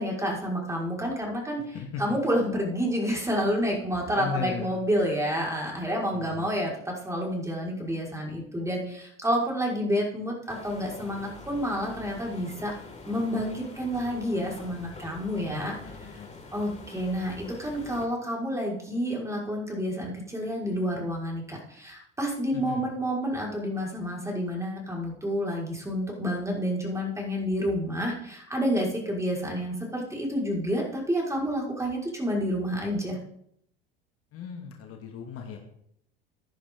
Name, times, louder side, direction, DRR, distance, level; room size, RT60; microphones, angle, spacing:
voice 1, 0.0-12.7 13.0-15.8 16.5-33.2, equal, 10° right, -2 dB, 5.4 m, -29 dB
voice 2, 1.7-2.2 4.2-4.8 6.1-6.5 15.4-16.3 22.5-22.8 34.3-35.6, left 7 dB, 50° left, 2 dB, 2.4 m, -37 dB
sound 1, 10.5-18.1, left 3 dB, 25° left, 3.9 m, -45 dB
15.5 x 10.5 x 3.9 m, 0.71 s
hypercardioid pair, 75°, 29 cm